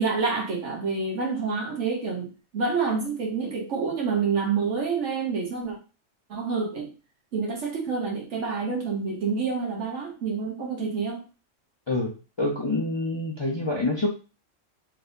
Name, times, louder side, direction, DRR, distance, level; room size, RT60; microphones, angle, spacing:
voice 1, 0.0-5.8 6.3-6.9 7.3-11.2, right 5 dB, 70° right, -1 dB, 1.3 m, -28 dB
voice 2, 12.4-14.1, left 2 dB, 30° left, -2 dB, 0.6 m, -26 dB
4.1 x 3.4 x 2.6 m, 0.32 s
omnidirectional pair, 1.3 m